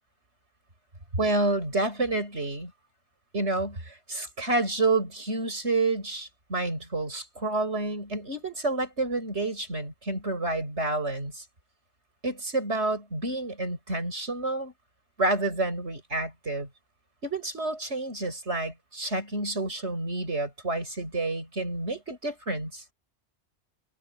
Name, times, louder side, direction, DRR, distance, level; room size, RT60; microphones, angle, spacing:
voice 1, 1.1-2.7 3.3-11.4 12.2-14.7 15.2-16.7 17.2-22.8, right 2 dB, 85° right, 6.2 m, -29 dB
omnidirectional pair, 1.1 m